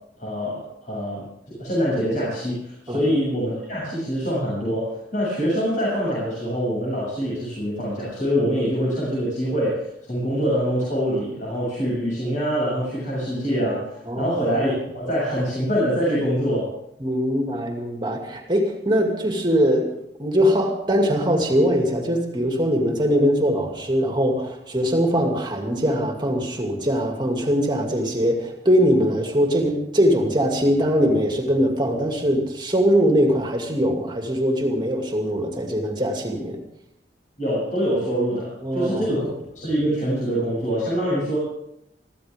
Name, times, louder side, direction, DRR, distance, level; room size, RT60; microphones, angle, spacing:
voice 1, 0.2-16.7 37.4-39.3 39.5-41.4, equal, 45° left, -7 dB, 7.6 m, -24 dB
voice 2, 17.0-19.9 20.2-36.6 38.6-39.0, equal, 25° right, 2 dB, 2.5 m, -21 dB
22.5 x 15.0 x 3.7 m, 0.79 s
head